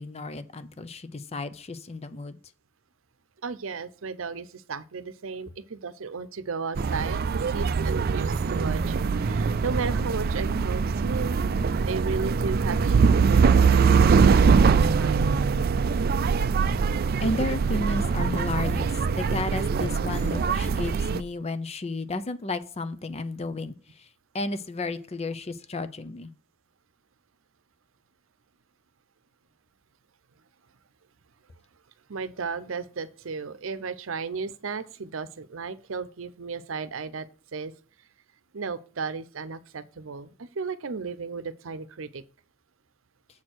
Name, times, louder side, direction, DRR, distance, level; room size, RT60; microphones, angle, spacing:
voice 1, 0.0-2.4 17.2-18.9 19.2-24.1 24.3-26.3, left 2 dB, 30° left, 0.6 m, -32 dB
voice 2, 3.4-11.4 11.9-15.3 18.9-19.1 32.1-37.3 37.5-37.7 38.5-42.2, right 4 dB, 90° right, 0.7 m, -34 dB
sound 1, 6.8-21.2, right 5 dB, 50° right, 0.4 m, -22 dB
7.3 x 4.4 x 6.2 m
head